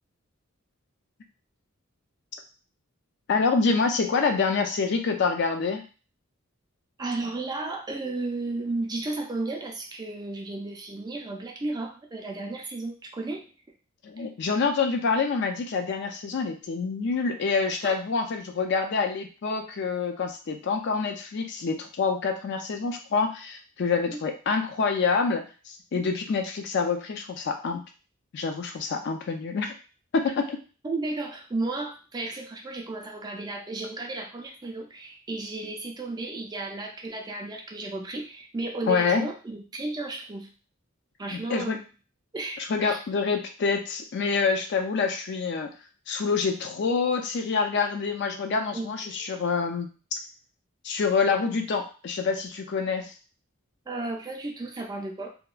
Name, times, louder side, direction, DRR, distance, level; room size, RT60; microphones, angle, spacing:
voice 1, 3.3-5.8 14.0-27.8 28.3-29.7 30.1-30.6 38.9-39.3 41.3-41.8 42.6-45.7 46.1-50.2 50.8-53.1, left 4 dB, 55° left, 5 dB, 0.4 m, -26 dB
voice 2, 7.0-13.4 17.8-17.9 24.1-24.2 25.9-26.1 30.8-40.5 41.2-41.8 42.3-43.0 48.7-48.9 53.9-55.3, right 2 dB, 20° right, 2 dB, 0.3 m, -33 dB
2.8 x 2.2 x 2.3 m, 0.36 s
head